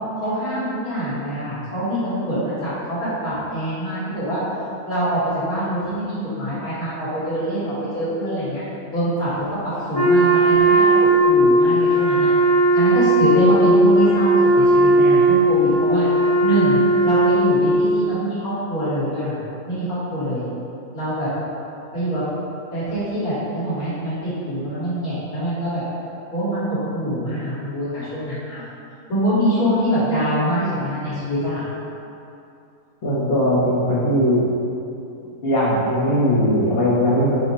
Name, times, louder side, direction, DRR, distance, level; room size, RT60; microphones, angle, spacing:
voice 1, 0.2-4.4 4.9-8.6 8.9-12.3 12.7-16.1 16.4-19.4 19.7-20.5 20.9-21.3 21.9-22.2 22.7-25.8 26.3-28.6 29.1-31.6, right 1 dB, 70° left, -12 dB, 2.2 m, -24 dB
Wind instrument woodwind instrument, 9.9-17.9, right 1 dB, 30° right, 0.8 m, -16 dB
voice 2, 33.0-34.5 35.4-37.4, equal, 45° left, -9 dB, 0.9 m, -19 dB
5.1 x 2.1 x 4.1 m, 2.7 s
omnidirectional pair, 1.6 m